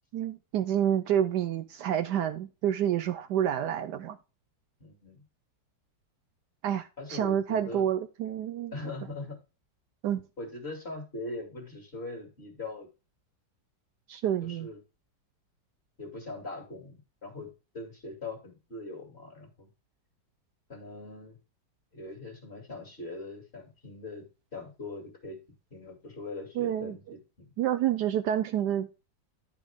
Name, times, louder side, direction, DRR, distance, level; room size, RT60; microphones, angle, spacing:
voice 1, 0.1-4.2 6.6-8.7 10.0-10.2 14.1-14.7 26.6-27.0 27.6-28.9, right 10 dB, 70° right, 1.1 m, -28 dB
voice 2, 4.8-5.2 7.0-7.9 8.7-9.4 10.4-12.9 14.4-14.8 16.0-19.7 20.7-21.4 21.9-24.3 24.5-25.4 25.7-27.5, left 2 dB, 35° left, 2.8 m, -41 dB
11.0 x 5.1 x 3.5 m
omnidirectional pair, 2.0 m